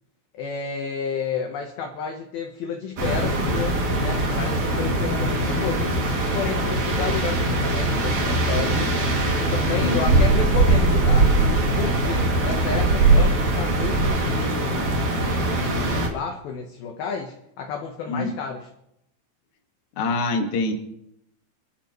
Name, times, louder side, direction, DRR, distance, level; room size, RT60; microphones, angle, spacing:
voice 1, 0.3-6.0 6.3-8.9 9.3-11.3 11.8-18.7, left 6 dB, 65° left, 2 dB, 2.7 m, -31 dB
sound 1, 3.0-16.1, right 2 dB, 45° right, 3.4 m, -21 dB
voice 2, 9.8-10.2 18.1-18.3 20.0-20.7, left 2 dB, 50° left, 2 dB, 2.7 m, -25 dB
27.0 x 13.0 x 3.2 m, 0.79 s
omnidirectional pair, 5.2 m